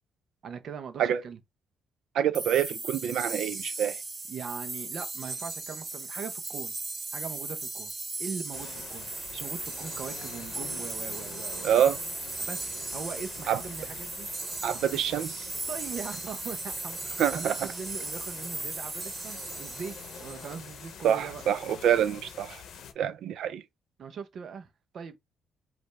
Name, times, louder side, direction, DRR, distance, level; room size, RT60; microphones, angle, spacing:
voice 1, 0.4-1.4 4.3-6.8 7.1-7.9 8.2-11.8 12.4-14.3 15.7-21.4 24.0-25.2, right 6 dB, 60° right, 0.9 m, -41 dB
voice 2, 2.1-4.0 11.6-12.0 13.5-13.6 14.6-15.5 17.2-17.5 21.0-22.6 23.0-23.6, right 9 dB, 75° right, 0.5 m, -26 dB
sound 1, 2.3-21.0, right 3 dB, 30° right, 1.3 m, -37 dB
sound 2, 8.5-22.9, left 7 dB, 70° left, 0.8 m, -46 dB
5.3 x 2.6 x 3.4 m
cardioid pair, 90°, 0 cm